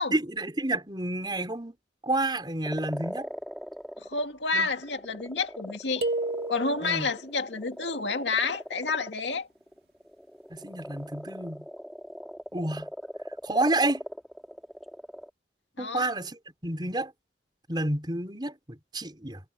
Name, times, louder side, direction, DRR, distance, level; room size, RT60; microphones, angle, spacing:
voice 1, 0.1-1.7 2.0-3.3 4.5-4.7 6.8-7.1 10.5-11.7 12.5-12.9 13.4-14.0 15.8-17.1 17.7-19.4, right 2 dB, 25° right, 5.7 m, -30 dB
sound 1, 2.7-4.3 4.6-15.3, equal, ahead, 5.0 m, -40 dB
voice 2, 4.0-6.0 6.5-9.5 15.8-16.1, left 4 dB, 85° left, 2.1 m, -29 dB
sound 2, 6.0-7.1, right 2 dB, 60° right, 2.5 m, -31 dB
head